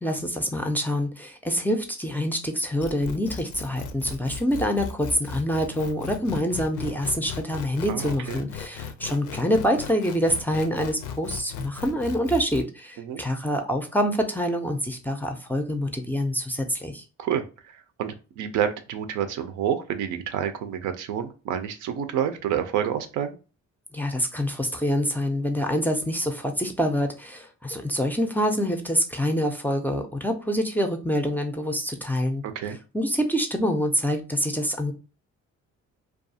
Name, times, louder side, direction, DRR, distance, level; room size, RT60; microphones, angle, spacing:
voice 1, 0.0-17.0 23.9-32.4 32.9-34.9, equal, 5° left, 5 dB, 0.4 m, -26 dB
sound 1, 2.8-12.6, left 6 dB, 75° left, 0.4 m, -37 dB
voice 2, 7.9-8.4 13.0-13.2 17.2-23.4 32.4-32.8, right 9 dB, 80° right, 8 dB, 0.5 m, -29 dB
2.4 x 2.3 x 2.6 m, 0.34 s
cardioid pair, 90°, 30 cm